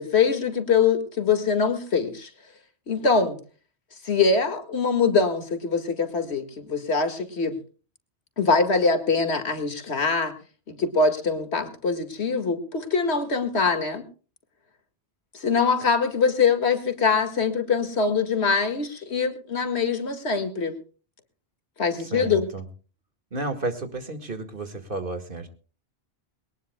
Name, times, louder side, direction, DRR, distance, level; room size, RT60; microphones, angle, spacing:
voice 1, 0.0-2.3 2.9-3.4 4.0-7.6 8.4-10.3 10.7-14.0 15.3-20.8 21.8-22.5, left 5 dB, 85° left, 8 dB, 2.2 m, -23 dB
voice 2, 22.0-22.7 23.3-25.5, right 2 dB, 55° right, 8 dB, 2.0 m, -32 dB
22.0 x 18.5 x 2.2 m, 0.37 s
omnidirectional pair, 1.1 m